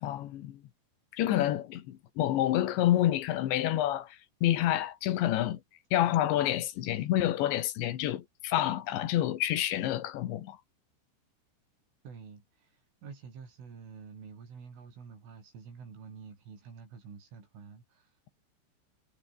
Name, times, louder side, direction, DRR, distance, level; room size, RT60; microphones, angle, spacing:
voice 1, 0.0-0.6 1.1-4.2 4.4-5.6 5.9-10.6, left 13 dB, 75° left, 3.7 m, -28 dB
voice 2, 12.0-18.2, right 5 dB, 90° right, 9.1 m, -48 dB
omnidirectional pair, 5.5 m